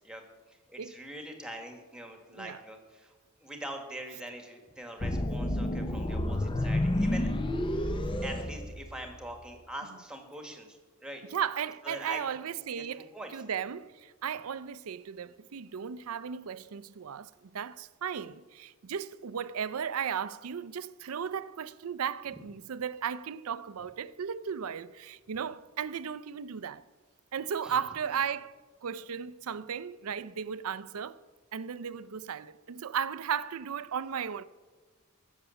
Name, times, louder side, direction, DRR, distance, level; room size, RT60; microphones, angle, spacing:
voice 1, 0.5-3.1 3.4-7.3 8.2-11.2 11.8-12.2 12.7-12.9 13.1-13.4 27.6-27.7 28.0-28.2, right 1 dB, 5° right, 1.5 m, -43 dB
sound 1, 5.0-9.3, left 1 dB, 20° left, 0.5 m, -30 dB
voice 2, 11.3-26.8 27.3-31.2 31.5-34.4, right 7 dB, 80° right, 0.5 m, -35 dB
14.5 x 7.5 x 6.9 m
head